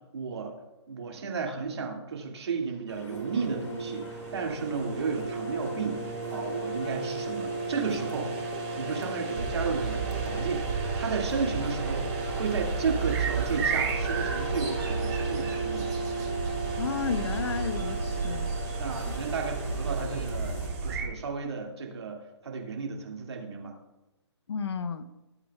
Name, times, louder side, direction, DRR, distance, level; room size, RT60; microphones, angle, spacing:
voice 1, 0.1-0.5 0.9-8.3 8.8-15.9 18.8-23.7, right 5 dB, 65° right, 0 dB, 2.4 m, -33 dB
sound 1, 2.9-20.7, left 2 dB, 85° left, 2.0 m, -47 dB
sound 2, 3.1-21.0, right 3 dB, 30° right, 1.8 m, -35 dB
sound 3, 9.4-21.1, right 5 dB, 45° right, 2.7 m, -32 dB
voice 2, 16.8-18.5 24.5-25.1, left 6 dB, 70° left, 11 dB, 0.9 m, -32 dB
16.0 x 8.0 x 2.4 m, 1.0 s
hypercardioid pair, 145°, 15 cm